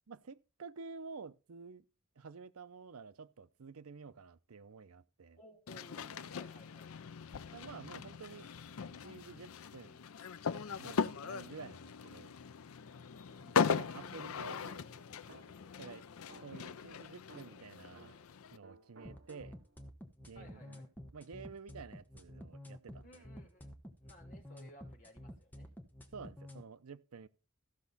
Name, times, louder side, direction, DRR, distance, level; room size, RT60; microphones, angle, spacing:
voice 1, 0.1-1.8 2.2-5.4 7.5-8.5 8.9-10.0 10.7-12.4 13.7-14.7 15.8-16.1 16.4-18.2 18.5-19.6 20.2-20.8 21.1-23.2 26.1-27.3, right 5 dB, 90° right, 0.7 m, -50 dB
voice 2, 5.4-7.0 13.2-13.6 20.3-20.9 23.0-25.7, equal, 40° left, 3.0 m, -59 dB
sound 1, 5.7-18.6, left 6 dB, 75° left, 0.5 m, -39 dB
sound 2, 13.6-15.8 16.3-18.4 18.6-19.8, right 3 dB, 70° right, 2.0 m, -59 dB
sound 3, 19.0-26.6, left 1 dB, 10° left, 1.2 m, -50 dB
14.5 x 6.0 x 4.1 m
head